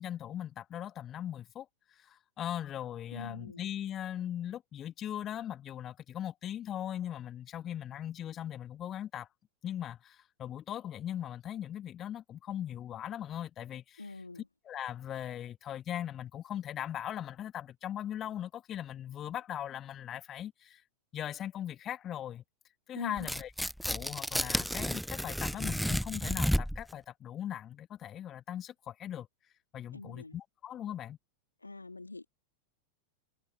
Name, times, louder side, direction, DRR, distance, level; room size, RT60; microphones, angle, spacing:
voice 1, 0.0-9.3 9.6-14.0 14.7-20.8 21.1-22.4 22.9-23.5 23.8-29.3 29.7-31.2, left 11 dB, 30° left, 2.0 m, -39 dB
voice 2, 3.1-3.6 14.0-14.5 23.0-23.3 29.9-30.4 31.6-32.2, left 3 dB, 80° left, 2.6 m, -44 dB
Tearing, 23.2-26.9, equal, ahead, 0.9 m, -32 dB
figure-of-eight pair, 90°, 0 cm